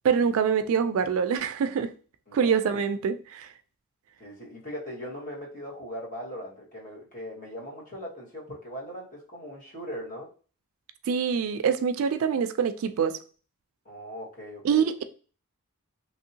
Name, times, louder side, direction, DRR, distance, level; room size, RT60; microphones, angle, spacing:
voice 1, 0.0-1.9 2.3-3.5 11.1-13.2 14.6-15.0, right 7 dB, 65° right, 0.3 m, -25 dB
voice 2, 4.2-10.3 13.8-14.8, equal, 35° left, 1.2 m, -39 dB
3.1 x 2.7 x 2.7 m
head